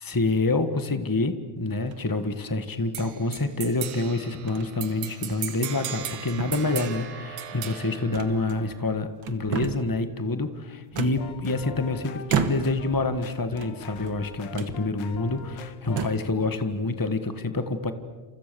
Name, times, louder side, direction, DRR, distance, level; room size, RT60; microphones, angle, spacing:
voice 1, 0.0-17.9, left 2 dB, 20° left, 9 dB, 0.5 m, -27 dB
sound 1, 1.8-2.2 3.0-3.7 4.5-4.7 5.1-5.2 5.7-6.1 6.4-7.1 8.1-8.9 9.2-10.0 10.9-11.8 12.3-12.9 13.5-14.2 14.5-14.8 15.4-15.5 15.8-16.3, right 7 dB, 50° right, 1.9 m, -33 dB
sound 2, 2.9-8.9, right 9 dB, 80° right, 2.9 m, -37 dB
sound 3, 11.0-16.1, left 8 dB, 60° left, 1.2 m, -41 dB
29.0 x 28.5 x 6.9 m, 1.3 s
omnidirectional pair, 3.3 m